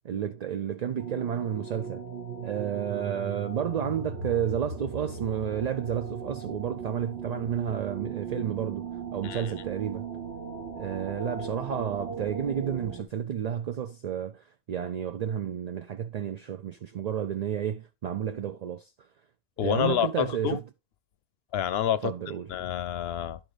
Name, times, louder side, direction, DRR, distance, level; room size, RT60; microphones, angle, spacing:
voice 1, 0.0-2.0 2.4-10.1 10.8-18.9 19.6-20.6 22.0-22.5, right 9 dB, 55° right, 0.5 m, -31 dB
sound 1, 1.0-13.0, right 5 dB, 80° right, 1.5 m, -38 dB
voice 2, 19.6-20.6 21.5-22.1 22.5-23.4, left 10 dB, 70° left, 0.8 m, -28 dB
11.0 x 3.9 x 4.9 m
omnidirectional pair, 1.1 m